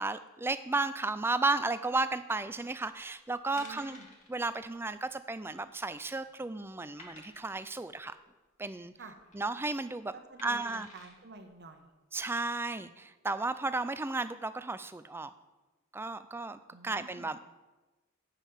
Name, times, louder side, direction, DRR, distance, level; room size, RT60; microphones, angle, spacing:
voice 1, 0.0-4.0 4.3-8.2 8.6-8.9 9.3-10.1 10.4-10.9 12.1-15.3 15.9-17.4, right 3 dB, 10° right, 12 dB, 0.3 m, -33 dB
sound 1, 2.9-3.1 3.6-4.3 4.6-4.8 5.1-5.2 5.7-6.2 7.0-7.7 9.0-9.4 10.4-11.1 11.7-11.8, left 2 dB, 35° left, 1.6 m, -52 dB
voice 2, 3.5-4.1 9.0-9.2 10.1-11.9 16.7-17.3, right 3 dB, 55° right, 6 dB, 1.1 m, -50 dB
8.2 x 5.6 x 7.1 m, 1.1 s
head